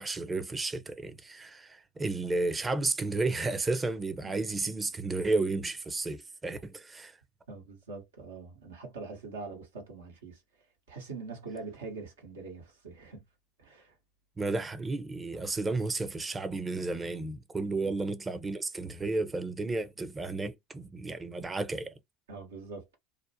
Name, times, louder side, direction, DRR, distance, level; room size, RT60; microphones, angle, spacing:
voice 1, 0.0-7.2 14.4-21.9, right 3 dB, 20° right, 0.6 m, -32 dB
voice 2, 7.5-10.4 10.9-13.2 13.6-14.0 17.7-17.9 22.3-23.0, right 4 dB, 85° right, 1.0 m, -43 dB
2.5 x 2.1 x 2.7 m
hypercardioid pair, 75°, 0 cm